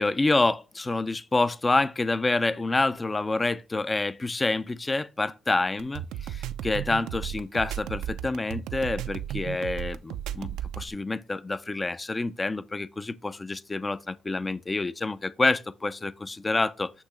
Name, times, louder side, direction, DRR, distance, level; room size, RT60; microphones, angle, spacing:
voice 1, 0.0-10.5 10.8-16.9, left 2 dB, 20° left, 0.4 m, -27 dB
sound 1, 5.8-10.9, right 11 dB, 90° right, 0.4 m, -34 dB
8.4 x 2.9 x 5.0 m
cardioid pair, 90°, 0 cm